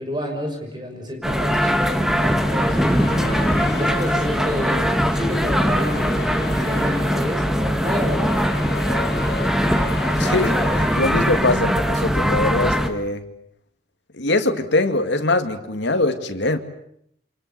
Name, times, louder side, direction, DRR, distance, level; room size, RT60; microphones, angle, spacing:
voice 1, 0.0-2.9 3.7-8.4, equal, 25° right, 4 dB, 5.9 m, -30 dB
sound 1, 1.2-12.9, equal, ahead, 1.5 m, -21 dB
sound 2, 2.0-12.4, left 3 dB, 55° left, 1.6 m, -33 dB
Whispering, 6.7-7.4 7.7-7.8 8.9-9.8 10.4-10.5 11.3-12.5, equal, 80° right, 1.6 m, -38 dB
voice 2, 10.2-13.3 14.2-16.6, left 2 dB, 75° left, 7 dB, 2.3 m, -22 dB
29.0 x 27.0 x 6.9 m, 0.72 s
head